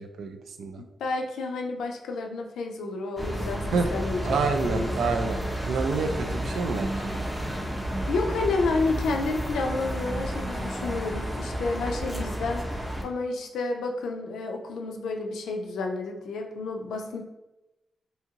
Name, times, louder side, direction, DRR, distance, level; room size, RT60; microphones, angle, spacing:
voice 1, 0.0-0.8 3.7-3.9 4.2-5.4 5.7-7.1, right 4 dB, 80° right, 6 dB, 0.3 m, -28 dB
voice 2, 1.0-4.4 4.6-5.0 8.1-17.2, left 3 dB, 90° left, 3 dB, 0.4 m, -30 dB
sound 1, 3.2-13.0, equal, 5° right, 0.6 m, -31 dB
2.7 x 2.4 x 2.8 m, 0.98 s
cardioid pair, 70°, 0 cm